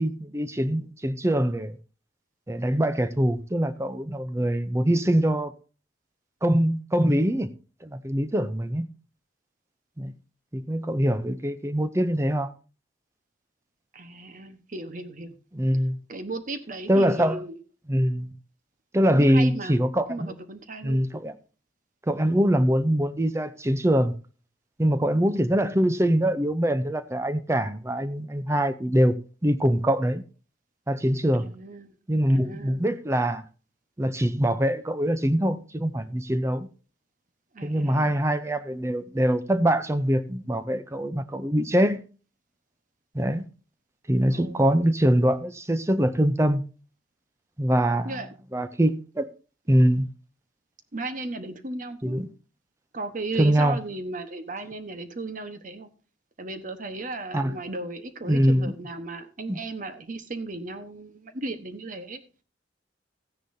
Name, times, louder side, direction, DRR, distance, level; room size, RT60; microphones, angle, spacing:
voice 1, 0.0-1.8 2.5-5.5 6.4-7.5 7.8-8.9 10.0-10.1 10.5-12.5 15.5-16.0 16.9-17.4 17.9-18.3 18.9-20.3 20.8-21.3 22.1-24.1 24.8-29.2 29.4-30.2 30.9-31.5 32.1-33.4 34.0-36.7 37.6-42.0 43.1-43.4 44.1-46.6 47.6-48.2 48.5-49.3 49.7-50.1 52.0-52.3 53.4-53.8 57.3-57.6 58.3-58.7 59.5-59.6, equal, 15° right, 0.6 m, -23 dB
voice 2, 13.9-15.3 16.1-17.6 19.1-19.8 20.1-21.0 31.4-32.0 32.3-32.8 37.5-38.2 44.3-44.8 48.0-48.3 50.9-52.2 52.9-55.9 56.4-62.2, right 2 dB, 45° right, 1.2 m, -35 dB
14.5 x 9.9 x 2.7 m
head